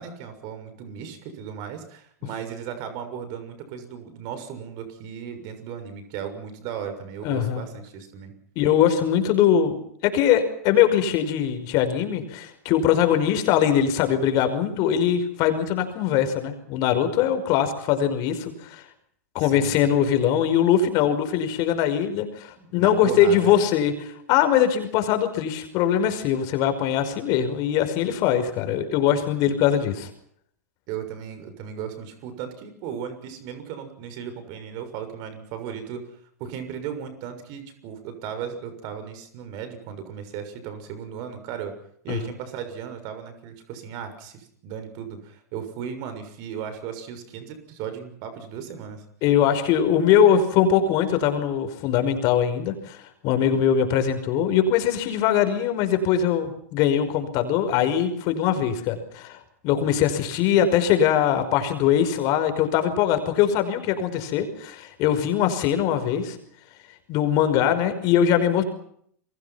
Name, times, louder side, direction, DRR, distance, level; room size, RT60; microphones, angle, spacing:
voice 1, 0.0-8.3 19.4-19.8 22.6-23.6 30.9-36.0 36.4-41.7 42.0-49.0, right 8 dB, 50° right, 9 dB, 6.6 m, -36 dB
voice 2, 7.2-7.6 8.6-9.8 10.0-18.8 19.3-30.1 42.1-42.2 49.2-59.4 59.6-66.4 67.1-68.6, left 9 dB, 45° left, 8 dB, 5.5 m, -22 dB
30.0 x 22.5 x 5.9 m, 0.65 s
hypercardioid pair, 100°, 9 cm